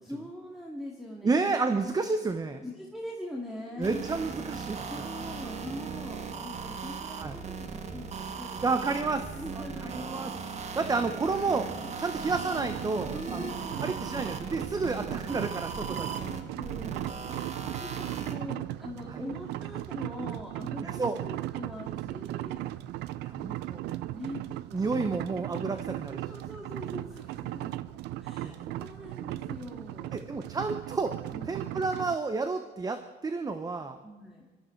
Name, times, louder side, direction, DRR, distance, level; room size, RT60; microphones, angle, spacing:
voice 1, 0.0-1.5 2.6-4.1 4.9-8.7 9.3-10.1 10.7-11.0 12.0-12.5 13.1-14.0 14.8-15.4 15.8-22.7 24.1-24.4 26.1-27.7 28.2-30.3 31.3-31.6 34.0-34.5, left 1 dB, ahead, -1 dB, 2.3 m, -42 dB
voice 2, 1.2-2.6 3.8-4.9 7.2-7.3 8.6-10.3 10.7-13.5 13.8-16.1 19.1-19.2 20.8-21.2 23.2-23.8 24.7-26.2 28.4-28.6 30.1-34.0, right 3 dB, 20° right, 9 dB, 0.9 m, -31 dB
sound 1, 3.8-18.4, right 5 dB, 40° right, 1.6 m, -38 dB
sound 2, 12.3-32.2, right 15 dB, 85° right, 0.6 m, -37 dB
21.5 x 13.5 x 4.6 m, 1.3 s
cardioid pair, 110°, 17 cm